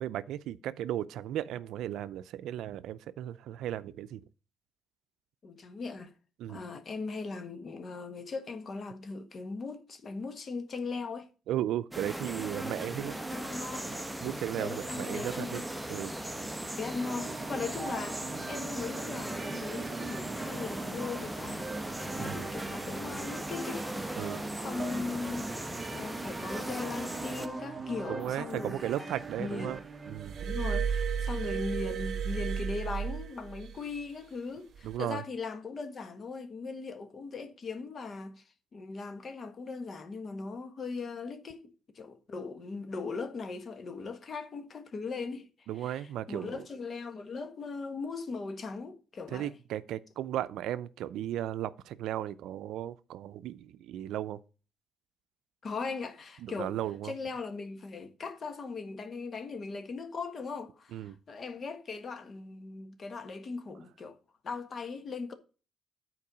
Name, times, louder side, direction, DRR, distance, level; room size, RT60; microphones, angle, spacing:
voice 1, 0.0-4.2 6.4-6.6 11.5-13.2 14.2-15.6 15.9-16.1 22.2-22.5 24.2-24.4 28.1-29.8 30.1-30.4 34.8-35.2 45.7-46.6 49.3-54.4 56.4-57.1 60.9-61.2, right 12 dB, 85° right, 0.5 m, -35 dB
voice 2, 5.4-6.1 6.5-11.3 13.3-13.9 14.5-15.6 16.7-21.7 22.2-25.5 25.9-29.0 29.4-29.8 30.4-38.4 38.7-45.5 45.8-49.5 55.6-56.7 57.0-64.2 64.4-65.3, left 4 dB, 45° left, 1.5 m, -39 dB
sound 1, 11.9-27.5, right 1 dB, 5° right, 0.9 m, -38 dB
sound 2, 17.0-30.5, right 4 dB, 30° right, 0.9 m, -42 dB
Glass, 30.2-33.8 34.8-35.0, right 7 dB, 60° right, 1.0 m, -33 dB
8.5 x 4.6 x 6.1 m
cardioid pair, 90°, 0 cm